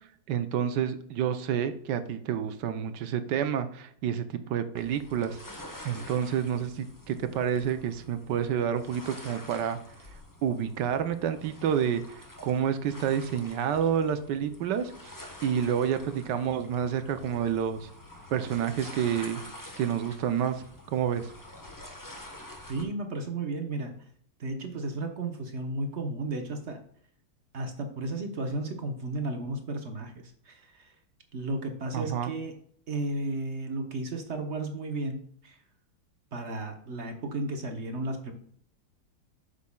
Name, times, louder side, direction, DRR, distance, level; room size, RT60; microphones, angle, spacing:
voice 1, 0.3-5.4 5.8-9.8 10.4-14.9 15.4-17.9 18.3-19.4 19.8-21.3 31.9-32.3, right 8 dB, 65° right, 9 dB, 1.2 m, -29 dB
sound 1, 4.7-22.8, left 1 dB, 15° left, 0.6 m, -47 dB
voice 2, 22.7-24.0 24.4-26.8 27.5-30.9 31.3-32.5 32.9-35.6 36.3-38.3, right 2 dB, 50° right, 5 dB, 0.9 m, -34 dB
8.3 x 6.4 x 2.3 m, 0.63 s
omnidirectional pair, 2.3 m